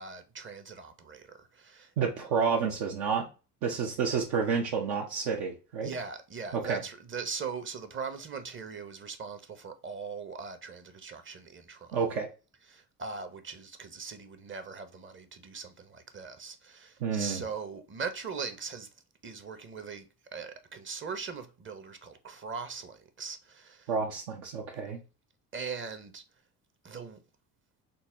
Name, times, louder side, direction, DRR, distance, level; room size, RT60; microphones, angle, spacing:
voice 1, 0.0-1.9 5.8-12.0 12.7-18.9 19.2-23.9 25.5-26.2 26.8-27.2, right 5 dB, 25° right, 0.7 m, -40 dB
voice 2, 2.0-3.3 3.6-5.9 6.5-6.8 11.9-12.3 17.0-17.4 23.9-25.0, right 5 dB, 70° right, 0.8 m, -30 dB
4.0 x 2.0 x 3.6 m
hypercardioid pair, 60°, 46 cm